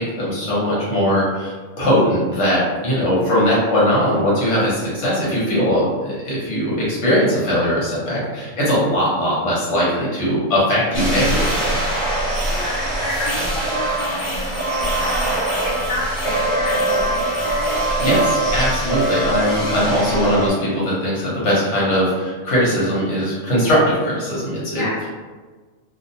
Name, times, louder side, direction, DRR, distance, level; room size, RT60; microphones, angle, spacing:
voice 1, 0.0-11.7 18.0-24.8, equal, 65° left, -6 dB, 1.2 m, -20 dB
sound 1, 10.9-20.5, right 1 dB, ahead, 0.6 m, -22 dB
voice 2, 12.5-15.3 15.6-17.9 24.7-25.1, left 1 dB, 80° left, -7 dB, 1.1 m, -30 dB
2.5 x 2.3 x 2.7 m, 1.4 s
omnidirectional pair, 1.3 m